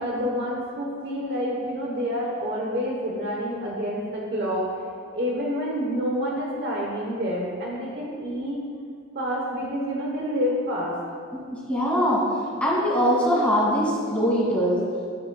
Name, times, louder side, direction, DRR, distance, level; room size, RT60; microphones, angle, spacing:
voice 1, 0.0-4.7 5.1-8.6 9.1-11.0, equal, 55° right, -3 dB, 1.0 m, -28 dB
voice 2, 11.3-14.8, equal, 5° left, -6 dB, 2.0 m, -22 dB
11.5 x 7.0 x 2.3 m, 2.2 s
head